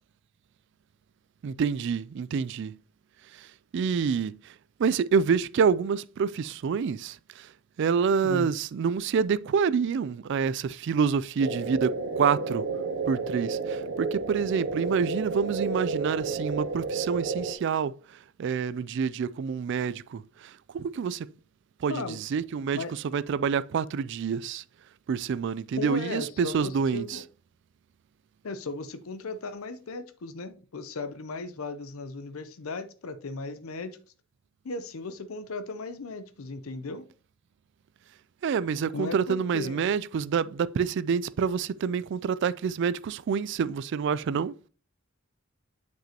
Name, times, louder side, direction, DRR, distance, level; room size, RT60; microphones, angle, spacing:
voice 1, 1.4-2.8 3.3-3.5 3.7-4.5 4.8-7.5 7.8-12.6 13.1-18.0 18.4-21.3 21.8-24.6 25.1-27.2 38.4-44.5, right 6 dB, 60° right, 0.3 m, -27 dB
sound 1, 11.4-17.5, right 4 dB, 80° right, 0.7 m, -31 dB
voice 2, 25.8-27.2 28.4-34.0 34.6-37.0 38.9-39.9, left 3 dB, 90° left, 0.6 m, -36 dB
7.4 x 5.9 x 2.9 m
head